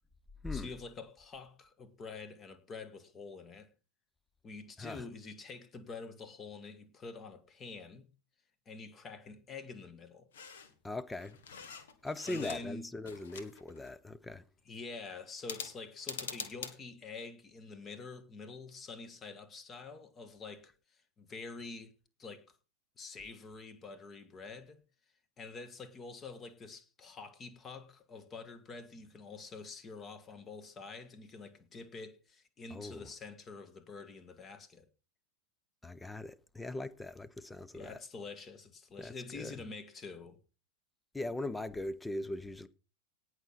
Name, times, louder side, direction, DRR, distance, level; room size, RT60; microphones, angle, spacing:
voice 1, 0.5-3.7 4.4-8.1 8.7-10.3 12.3-12.9 14.7-22.4 23.0-24.8 25.4-34.8 37.7-40.4, left 4 dB, 25° left, 1.8 m, -47 dB
sound 1, 10.3-10.7 11.1-12.8 13.0-13.9 15.4-16.7, left 6 dB, 60° left, 1.9 m, -45 dB
voice 2, 10.8-11.4 12.0-14.5 32.7-33.1 35.8-38.0 39.0-39.5 41.1-42.7, left 2 dB, 5° left, 0.8 m, -40 dB
18.5 x 6.5 x 4.2 m
figure-of-eight pair, 90°, 0 cm